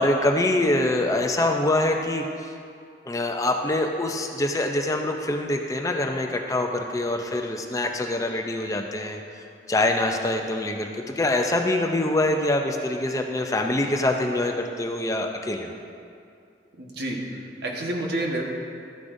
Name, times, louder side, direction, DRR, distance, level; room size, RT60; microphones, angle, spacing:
voice 1, 0.0-2.2 3.1-9.2 9.7-15.7, left 1 dB, 20° left, 3 dB, 0.5 m, -24 dB
voice 2, 16.8-17.2 17.6-18.4, right 1 dB, 70° right, -1 dB, 1.3 m, -28 dB
13.0 x 9.7 x 2.6 m, 2.4 s
head